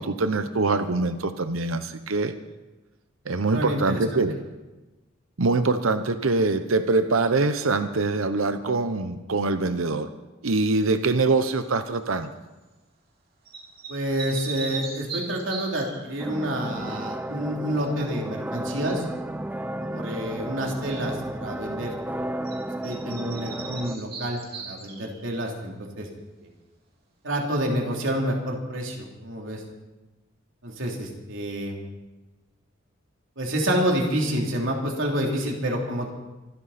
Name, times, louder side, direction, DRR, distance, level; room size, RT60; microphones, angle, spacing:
voice 1, 0.0-2.3 3.3-4.3 5.4-10.1 10.4-12.3, right 3 dB, 85° right, 10 dB, 0.9 m, -24 dB
voice 2, 3.5-4.2 13.9-19.0 19.8-21.9 22.8-26.1 26.4-26.5 27.2-29.6 30.6-31.8 33.4-36.1, equal, 70° right, 0 dB, 3.3 m, -28 dB
sound 1, 11.3-11.6 13.5-16.1 22.4-22.6 22.8-25.3, right 4 dB, 50° right, 3.4 m, -38 dB
sound 2, 16.2-24.0, right 1 dB, 10° right, 0.5 m, -33 dB
25.5 x 13.0 x 4.3 m, 1.1 s
head